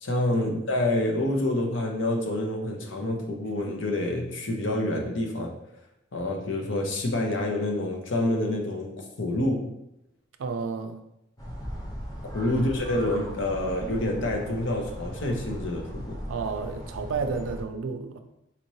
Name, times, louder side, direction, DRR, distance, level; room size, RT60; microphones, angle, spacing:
voice 1, 0.0-5.5 6.1-9.7 12.3-16.2, left 1 dB, 65° left, 2 dB, 0.7 m, -27 dB
voice 2, 10.4-11.0 12.4-12.8 16.3-18.2, right 4 dB, 75° right, 8 dB, 0.4 m, -32 dB
sound 1, 11.4-17.6, equal, 20° left, 0.6 m, -38 dB
4.2 x 3.0 x 2.7 m, 0.83 s
head